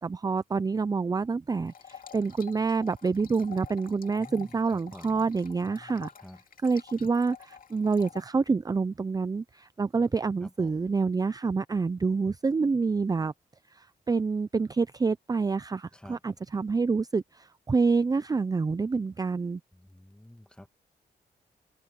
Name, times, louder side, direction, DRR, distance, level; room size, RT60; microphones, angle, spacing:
voice 1, 0.0-6.1 6.6-13.3 13.7-19.6, right 4 dB, 25° right, 0.5 m, -27 dB
sound 1, 1.7-8.2, left 8 dB, 60° left, 2.2 m, -49 dB
voice 2, 4.1-5.3 5.6-6.4 10.0-10.2 10.4-10.9 15.9-16.2 19.7-20.7, left 1 dB, 5° left, 2.0 m, -50 dB
cardioid pair, 85°, 16 cm